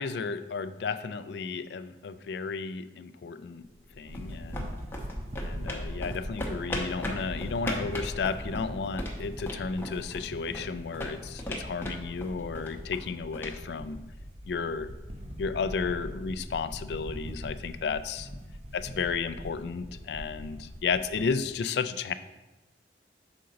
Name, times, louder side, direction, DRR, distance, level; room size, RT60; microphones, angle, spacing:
voice 1, 0.0-3.6 4.0-4.7 5.4-14.1 14.5-14.9 15.4-18.3 18.7-22.1, left 5 dB, 70° left, 12 dB, 0.3 m, -33 dB
sound 1, 3.7-14.5, equal, 15° left, 0.8 m, -39 dB
sound 2, 4.1-21.3, equal, 35° right, 0.6 m, -42 dB
6.7 x 5.2 x 3.9 m, 1.1 s
head